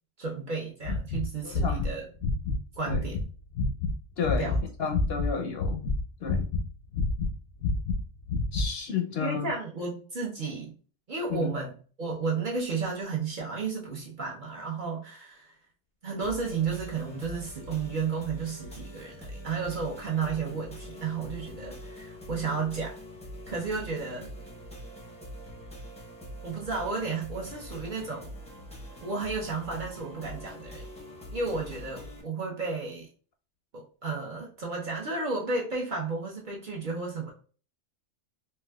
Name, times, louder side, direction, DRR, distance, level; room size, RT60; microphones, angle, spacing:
voice 1, 0.2-2.1 2.8-3.2 4.4-4.6 9.2-10.7 11.1-15.5 16.0-22.9 23.5-24.3 26.4-28.3 29.0-30.9 31.3-33.1 33.7-37.3, right 4 dB, 50° right, -2 dB, 0.7 m, -33 dB
sound 1, 0.8-3.3 3.6-3.9 4.2-5.3 5.6-6.7 6.9-8.7, left 3 dB, 90° left, 1.0 m, -28 dB
voice 2, 1.4-1.9 2.9-3.0 4.2-5.9 6.2-6.5 8.5-9.5 11.3-11.5, left 6 dB, 65° left, 5 dB, 0.7 m, -32 dB
sound 2, 16.2-32.2, equal, 10° left, 0.4 m, -44 dB
4.1 x 2.2 x 2.2 m, 0.40 s
omnidirectional pair, 1.3 m